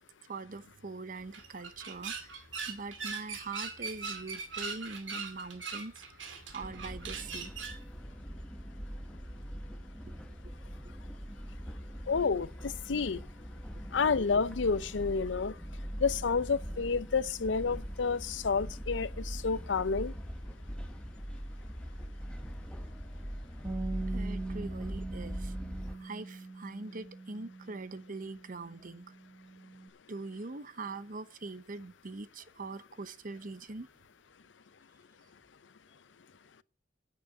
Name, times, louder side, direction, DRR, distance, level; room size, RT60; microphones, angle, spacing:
voice 1, 0.3-6.0 6.5-7.5 10.1-10.2 10.8-10.9 24.1-25.5 26.0-29.1 30.1-33.9, right 3 dB, 45° right, 0.8 m, -43 dB
sound 1, 1.2-7.8, right 5 dB, 85° right, 2.3 m, -41 dB
sound 2, 6.6-26.0, equal, 5° left, 0.9 m, -41 dB
voice 2, 12.1-13.2 13.9-15.5 16.0-20.1, left 5 dB, 75° left, 0.6 m, -30 dB
Bass guitar, 23.6-29.9, right 3 dB, 20° right, 3.2 m, -42 dB
10.0 x 8.5 x 8.5 m
head